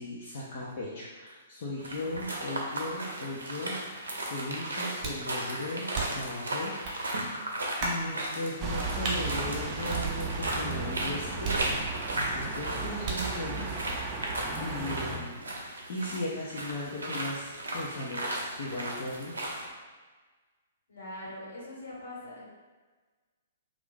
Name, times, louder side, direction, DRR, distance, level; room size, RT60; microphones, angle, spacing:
voice 1, 0.0-7.5 7.8-11.9 12.1-14.3 14.6-15.5 15.9-19.5, left 1 dB, 50° left, -6 dB, 0.6 m, -37 dB
sound 1, 1.8-19.7, right 1 dB, 75° right, 0.6 m, -36 dB
sound 2, 5.0-5.3 5.9-6.3 6.8-7.0 7.8-8.1 9.0-9.2 9.9-10.5 11.4-12.1 13.0-13.4, right 4 dB, 40° right, 0.8 m, -34 dB
sound 3, 8.6-15.2, right 4 dB, 25° right, 0.5 m, -36 dB
voice 2, 20.9-22.5, left 1 dB, 70° left, -6 dB, 1.3 m, -42 dB
2.5 x 2.4 x 3.6 m, 1.4 s
figure-of-eight pair, 115°, 0 cm